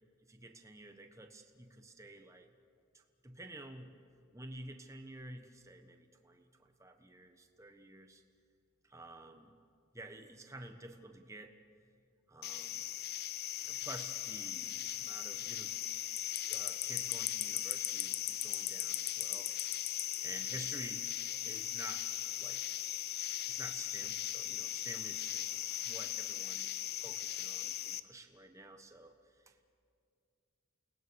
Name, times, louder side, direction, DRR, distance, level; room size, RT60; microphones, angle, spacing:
voice 1, 0.3-2.5 2.9-4.0 4.3-8.2 8.9-9.5 9.9-11.5 12.3-12.8 13.6-15.8 16.4-19.5 20.2-21.1 21.4-22.1 22.4-22.6 23.5-25.5 25.8-29.6, right 2 dB, 15° right, 5 dB, 1.3 m, -51 dB
sound 1, 12.4-28.0, left 12 dB, 50° left, 0.7 m, -38 dB
29.0 x 19.0 x 6.4 m, 2.4 s
head